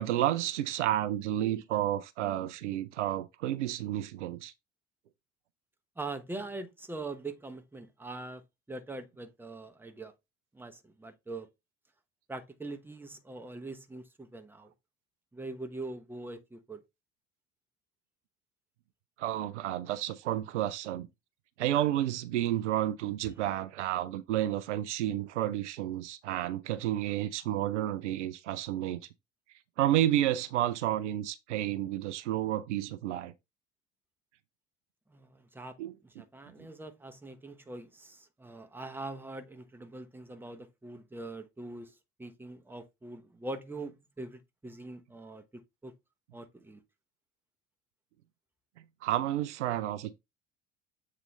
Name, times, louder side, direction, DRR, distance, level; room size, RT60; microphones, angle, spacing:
voice 1, 0.0-4.5 19.2-21.1 21.6-29.0 29.8-33.3 35.8-36.2 36.6-36.7 49.0-50.1, right 13 dB, 70° right, 0.6 m, -31 dB
voice 2, 6.0-8.4 8.7-10.1 10.5-11.5 12.3-14.7 15.3-16.8 35.1-35.7 36.2-41.9 42.2-45.9 46.3-46.8, right 2 dB, 5° right, 0.9 m, -43 dB
7.4 x 3.9 x 3.2 m
figure-of-eight pair, 65°, 37 cm